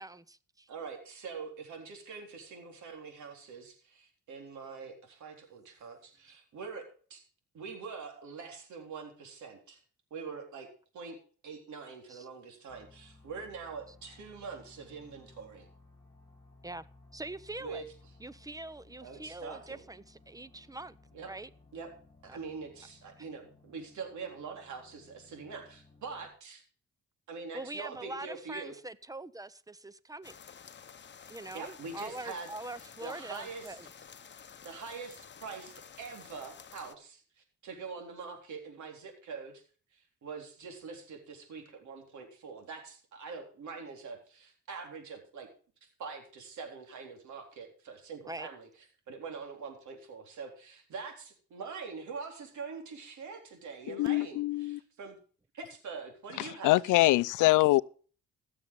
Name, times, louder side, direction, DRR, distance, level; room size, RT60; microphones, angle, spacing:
voice 1, 0.0-0.7 12.1-12.3 16.6-16.8 17.1-17.8 18.2-21.0 21.3-21.5 22.3-22.4 23.2-23.3 27.5-30.4 31.3-33.9 48.2-48.5, right 2 dB, 10° right, 0.7 m, -43 dB
voice 2, 0.7-7.2 7.5-9.8 10.1-10.7 10.9-11.2 11.4-15.7 17.6-17.8 19.0-19.8 21.1-21.3 21.7-21.9 22.2-26.6 27.3-28.8 31.5-32.5 33.0-33.8 34.6-39.6 39.9-45.5 45.8-48.7 49.1-55.2 55.5-56.8, right 5 dB, 70° right, 3.8 m, -44 dB
sound 1, 12.7-26.3, left 2 dB, 15° left, 7.5 m, -59 dB
sound 2, 30.2-36.9, left 7 dB, 35° left, 1.0 m, -52 dB
voice 3, 53.9-54.8 56.4-57.8, left 19 dB, 85° left, 0.5 m, -24 dB
15.5 x 7.0 x 5.3 m
cardioid pair, 90°, 30 cm